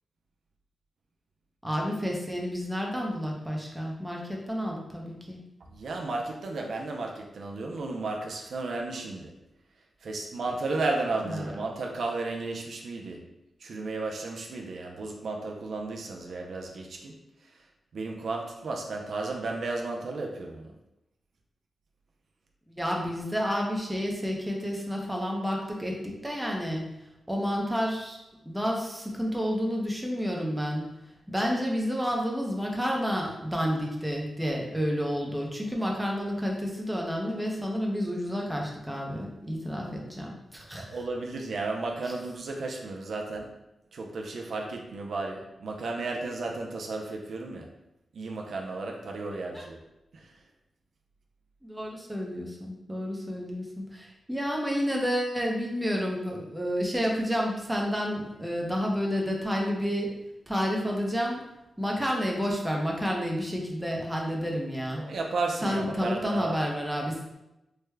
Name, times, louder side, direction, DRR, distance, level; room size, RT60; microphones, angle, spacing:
voice 1, 1.6-5.4 11.2-11.5 22.7-26.9 27.3-30.9 31.3-40.8 49.5-49.7 51.6-60.1 60.5-61.4 61.8-65.0 65.6-67.2, equal, 5° right, -1 dB, 0.6 m, -30 dB
voice 2, 5.6-9.3 10.0-13.2 13.6-17.1 17.4-17.6 17.9-20.7 40.8-43.5 43.9-47.7 48.1-49.8 50.1-50.4 65.0-66.6, right 3 dB, 70° right, 1 dB, 0.4 m, -33 dB
3.4 x 2.1 x 3.2 m, 0.91 s
wide cardioid pair, 100°, 0 cm